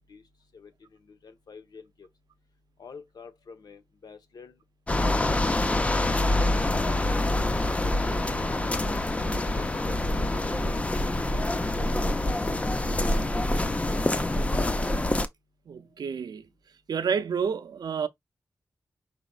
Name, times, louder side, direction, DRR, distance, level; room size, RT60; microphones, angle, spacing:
voice 1, 1.1-2.1 2.8-4.5 8.1-10.6 11.3-13.2 13.5-13.9, left 5 dB, 75° left, 1.0 m, -47 dB
sound 1, 4.9-15.3, left 1 dB, 20° left, 0.5 m, -26 dB
voice 2, 15.7-16.4 16.9-18.1, right 6 dB, 80° right, 0.6 m, -29 dB
5.1 x 4.1 x 2.4 m
wide cardioid pair, 145°, 7 cm